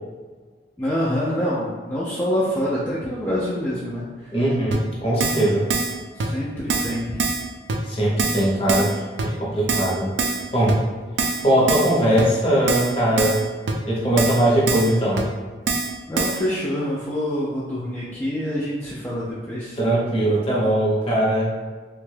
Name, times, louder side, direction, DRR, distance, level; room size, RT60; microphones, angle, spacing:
voice 1, 0.8-4.0 6.2-6.5 6.8-7.2 16.1-19.8, equal, 10° left, -8 dB, 0.3 m, -26 dB
voice 2, 4.3-5.7 7.9-10.1 10.5-10.8 11.4-13.4 13.9-15.3 19.8-21.5, right 1 dB, 30° left, -5 dB, 0.7 m, -20 dB
Keyboard (musical), 4.7-4.8 5.2-5.4 5.7-5.9 6.2-6.3 6.7-6.9 7.2-7.4 7.7-7.8 8.2-8.4 8.7-8.9 9.2-9.3 9.7-9.9 10.2-10.4 10.7-10.8 11.2-11.4 11.7-11.9 12.2-12.3 12.7-12.9 13.2-13.4 13.7-13.8 14.2-14.4 14.7-14.9 15.2-15.3 15.7-15.9 16.2-16.4, right 4 dB, 70° right, 0.4 m, -23 dB
2.9 x 2.2 x 3.2 m, 1.4 s
head